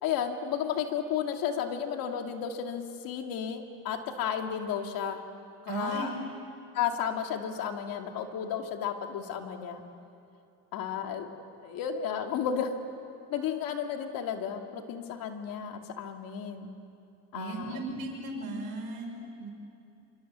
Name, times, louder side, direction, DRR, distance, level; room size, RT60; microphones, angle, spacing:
voice 1, 0.0-5.2 5.6-6.1 6.7-9.8 10.7-11.3 11.6-12.7 13.3-16.7 17.3-17.8, left 8 dB, 85° left, 4 dB, 2.3 m, -33 dB
voice 2, 5.7-6.2 17.3-19.5, right 3 dB, 90° right, 2 dB, 5.3 m, -36 dB
26.5 x 26.0 x 7.5 m, 2.6 s
cardioid pair, 95°, 34 cm